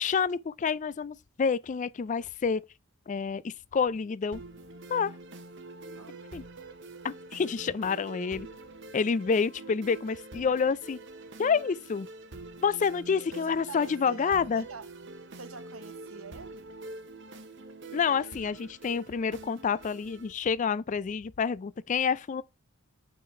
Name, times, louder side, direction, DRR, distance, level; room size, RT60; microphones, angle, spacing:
voice 1, 0.0-2.6 3.1-4.4 4.9-5.1 6.3-6.4 7.0-8.5 8.9-11.0 11.4-12.1 12.6-14.6 17.9-22.4, left 6 dB, 35° left, 0.3 m, -28 dB
sound 1, 4.3-20.3, right 2 dB, 55° right, 0.9 m, -46 dB
voice 2, 13.3-14.9 15.4-16.7, right 4 dB, 80° right, 1.1 m, -45 dB
7.6 x 3.9 x 4.3 m
head